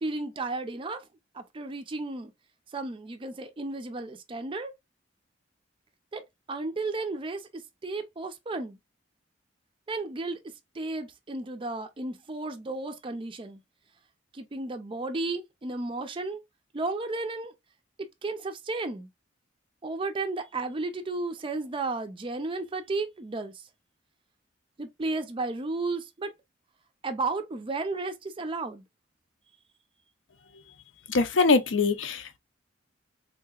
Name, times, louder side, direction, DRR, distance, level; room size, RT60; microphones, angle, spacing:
voice 1, 0.0-1.0 1.3-2.3 2.7-4.7 6.1-6.2 6.5-7.4 7.8-8.8 9.9-10.4 10.8-13.6 14.4-16.4 16.7-17.5 18.2-19.1 19.8-23.5 24.8-26.3 27.0-28.8, right 3 dB, 25° right, 0.4 m, -33 dB
voice 2, 31.1-32.4, left 4 dB, 75° left, 0.6 m, -23 dB
3.6 x 2.8 x 2.3 m
head